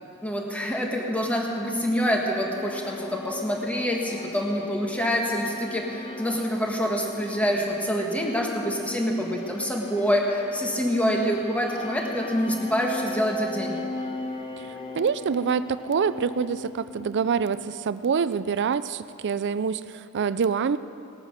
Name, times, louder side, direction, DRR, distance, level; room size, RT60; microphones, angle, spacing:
voice 1, 0.2-13.8, equal, 5° left, 0 dB, 1.4 m, -26 dB
sound 1, 1.4-17.7, left 2 dB, 20° left, 0.8 m, -39 dB
voice 2, 14.6-20.8, right 6 dB, 55° right, 14 dB, 0.4 m, -26 dB
18.5 x 9.0 x 6.5 m, 2.7 s
head